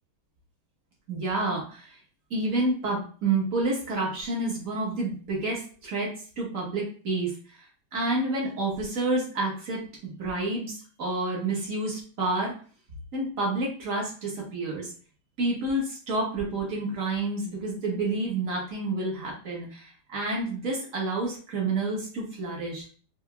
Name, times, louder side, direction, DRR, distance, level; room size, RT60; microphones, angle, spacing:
voice 1, 1.1-2.0 2.3-7.6 7.9-12.5 13.1-14.9 15.4-22.8, right 2 dB, 45° right, -3 dB, 1.2 m, -29 dB
4.8 x 2.2 x 2.2 m, 0.41 s
omnidirectional pair, 2.3 m